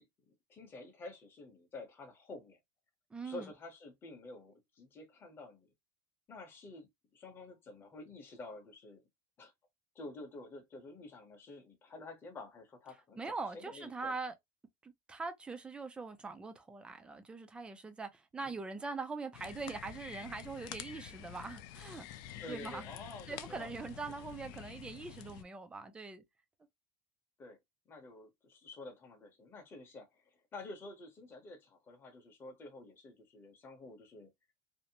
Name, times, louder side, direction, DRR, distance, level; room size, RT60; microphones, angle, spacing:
voice 1, 0.0-2.6 3.2-5.7 6.3-9.0 9.4-9.5 9.9-14.1 18.4-18.5 22.4-23.7 27.4-27.6 27.9-30.2 30.5-34.3, left 2 dB, 20° left, 0.7 m, -50 dB
voice 2, 3.1-3.5 13.2-14.3 14.8-22.9 23.3-26.2, right 4 dB, 10° right, 0.3 m, -42 dB
sound 1, 19.3-25.4, left 11 dB, 65° left, 0.4 m, -48 dB
2.6 x 2.0 x 2.7 m
cardioid pair, 170°, 12 cm